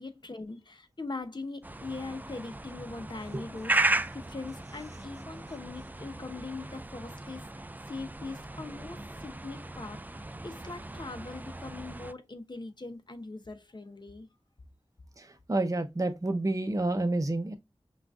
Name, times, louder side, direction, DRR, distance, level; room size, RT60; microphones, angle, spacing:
voice 1, 0.0-3.7 4.1-7.5 7.9-14.3, left 3 dB, 50° left, 0.9 m, -41 dB
sound 1, 1.6-12.1, right 2 dB, 15° right, 0.3 m, -36 dB
voice 2, 15.2-17.5, right 2 dB, 35° right, 0.7 m, -29 dB
5.8 x 2.5 x 2.5 m
wide cardioid pair, 50°, 10 cm